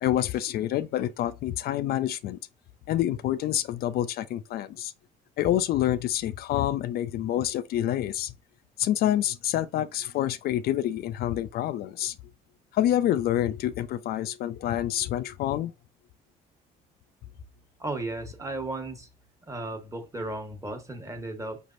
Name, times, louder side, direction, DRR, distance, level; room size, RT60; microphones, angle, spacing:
voice 1, 0.0-2.4 2.9-4.9 5.4-8.3 8.8-12.2 12.7-15.7, left 12 dB, 65° left, 0.4 m, -27 dB
voice 2, 17.8-19.1 19.4-21.6, right 2 dB, 20° right, 1.2 m, -35 dB
5.2 x 3.3 x 2.5 m
cardioid pair, 110°, 17 cm